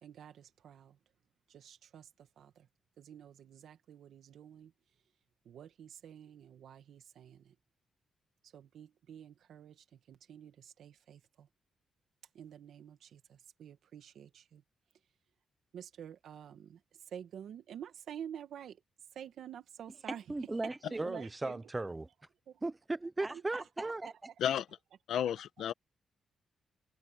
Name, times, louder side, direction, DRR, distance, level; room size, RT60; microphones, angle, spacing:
voice 1, 0.0-1.0 1.5-2.7 3.0-4.7 5.4-7.6 8.4-11.5 12.3-14.6 15.7-16.8 17.1-18.8 19.1-20.2 20.6-21.6 22.5-22.6 23.3-23.9 25.1-25.2, right 9 dB, 75° right, 2.0 m, -49 dB
voice 2, 20.3-22.1 22.6-24.1, right 2 dB, 15° right, 0.6 m, -36 dB
voice 3, 25.1-25.7, left 10 dB, 85° left, 1.5 m, -32 dB
wide cardioid pair, 145°, 0 cm